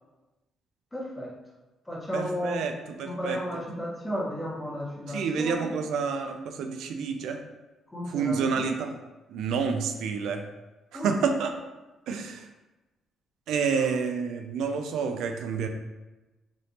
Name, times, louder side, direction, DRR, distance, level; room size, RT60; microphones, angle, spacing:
voice 1, 0.9-1.3 1.9-2.7 3.0-5.7 7.9-8.7 10.9-11.2 13.7-13.9, equal, 15° left, -5 dB, 1.1 m, -34 dB
voice 2, 2.1-2.7 3.0-3.4 5.1-7.4 8.1-9.0 9.3-10.4 10.9-11.5 12.1-12.4 13.5-15.7, right 5 dB, 80° right, 5 dB, 0.3 m, -29 dB
3.3 x 3.0 x 2.7 m, 1.1 s
cardioid pair, 90°, 0 cm